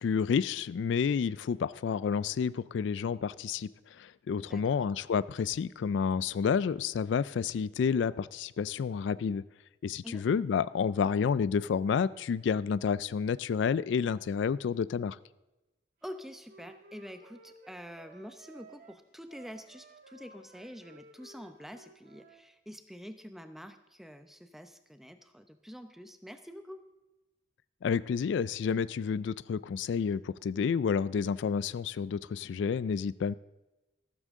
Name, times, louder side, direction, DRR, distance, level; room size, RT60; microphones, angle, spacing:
voice 1, 0.0-9.4 9.8-15.2 27.8-33.3, left 6 dB, 70° left, 0.3 m, -30 dB
voice 2, 4.4-4.8 10.0-10.3 16.0-26.8, equal, ahead, 0.7 m, -47 dB
Wind instrument woodwind instrument, 16.1-22.4, right 2 dB, 45° right, 1.5 m, -56 dB
14.5 x 12.5 x 3.7 m
head